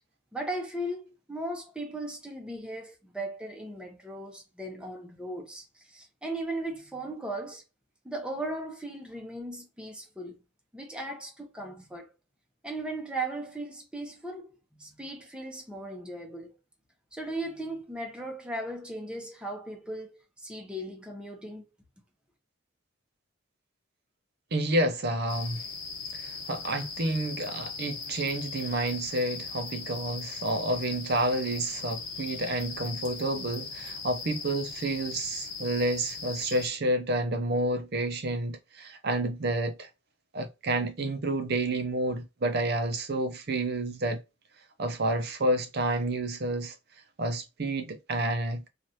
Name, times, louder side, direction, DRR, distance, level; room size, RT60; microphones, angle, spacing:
voice 1, 0.3-7.6 8.0-10.4 10.7-12.1 12.6-16.5 17.1-21.7, right 1 dB, 5° right, 0.7 m, -37 dB
voice 2, 24.5-25.6 26.1-39.9 40.3-44.2 44.8-46.7 47.2-48.7, right 1 dB, 50° right, 0.6 m, -29 dB
sound 1, 25.3-36.7, left 5 dB, 50° left, 1.0 m, -39 dB
3.1 x 2.4 x 2.7 m
head